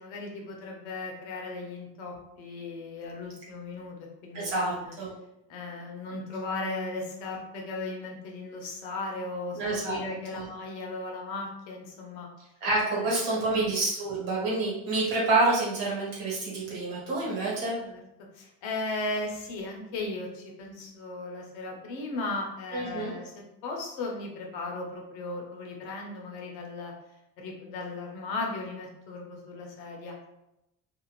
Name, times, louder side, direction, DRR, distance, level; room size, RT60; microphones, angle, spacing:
voice 1, 0.0-4.0 4.2-4.9 5.5-12.3 12.9-13.1 13.5-13.7 17.8-18.0 18.3-23.3 23.6-26.9 27.4-30.3, left 2 dB, 75° left, 0 dB, 0.9 m, -36 dB
voice 2, 4.3-5.1 9.5-10.0 10.3-10.5 12.6-17.8 22.7-23.1, right 2 dB, 80° right, -6 dB, 1.4 m, -28 dB
2.5 x 2.3 x 3.0 m, 0.86 s
hypercardioid pair, 55°, 46 cm